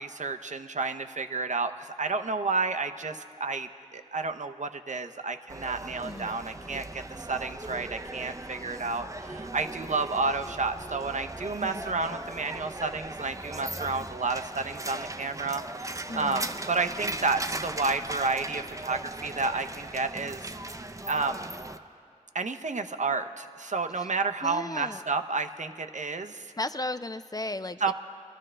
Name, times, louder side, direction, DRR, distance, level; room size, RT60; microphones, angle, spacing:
voice 1, 0.0-20.4 21.1-21.5 22.3-26.5 27.8-27.9, right 3 dB, 65° right, 7 dB, 0.6 m, -31 dB
sound 1, 5.5-21.8, right 2 dB, 25° right, 0.5 m, -39 dB
voice 2, 6.0-6.4 11.6-12.0 16.1-16.5 24.0-24.1 24.4-25.0 26.6-27.9, left 2 dB, 30° left, 11 dB, 0.4 m, -35 dB
22.5 x 13.0 x 3.3 m, 2.2 s
wide cardioid pair, 55°, 13 cm